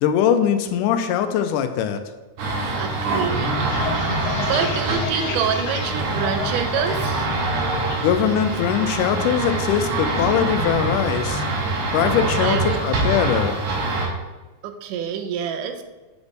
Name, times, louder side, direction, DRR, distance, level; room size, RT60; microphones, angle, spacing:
voice 1, 0.0-2.0 8.0-11.4 11.9-13.6, left 8 dB, 85° left, 9 dB, 2.1 m, -21 dB
sound 1, 2.4-14.1, right 2 dB, 70° right, 2.4 m, -24 dB
voice 2, 2.8-3.5 4.1-7.3 12.4-12.8 14.6-15.8, right 7 dB, 85° right, 7 dB, 2.2 m, -27 dB
sound 2, 3.7-7.1 7.4-8.0 8.4-8.8 9.0-10.3 10.6-10.9 11.2-11.7, left 5 dB, 70° left, 1.9 m, -32 dB
8.0 x 3.4 x 3.9 m, 1.2 s
omnidirectional pair, 3.6 m